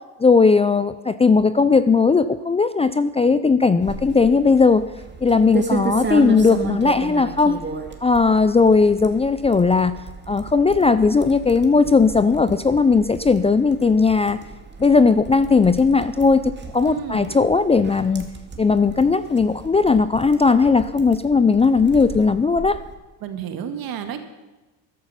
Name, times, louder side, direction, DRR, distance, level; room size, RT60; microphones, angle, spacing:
voice 1, 0.2-4.8 5.2-7.6 8.0-9.9 10.3-14.4 14.8-18.3 18.6-22.8, left 4 dB, 15° left, 13 dB, 0.5 m, -17 dB
sound 1, 3.8-22.9, right 4 dB, 25° right, 2.1 m, -34 dB
voice 2, 16.9-17.3 23.2-24.2, right 9 dB, 60° right, 8 dB, 1.9 m, -30 dB
13.5 x 11.5 x 5.7 m, 1.1 s
supercardioid pair, 85°, 41 cm